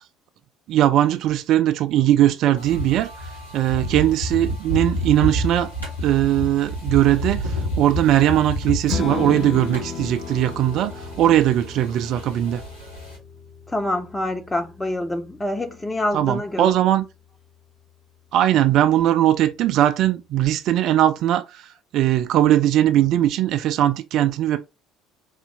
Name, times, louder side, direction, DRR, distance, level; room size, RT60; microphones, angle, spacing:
voice 1, 0.7-3.1 3.5-5.7 6.0-12.6 16.1-17.1 18.3-24.6, right 12 dB, 50° right, 0.3 m, -19 dB
sound 1, 2.6-13.2, equal, 90° left, 1.4 m, -30 dB
Strum, 8.9-15.2, left 6 dB, 40° left, 1.1 m, -34 dB
voice 2, 13.7-16.7, left 1 dB, 15° left, 0.7 m, -26 dB
3.9 x 2.6 x 3.2 m
figure-of-eight pair, 55°, 0 cm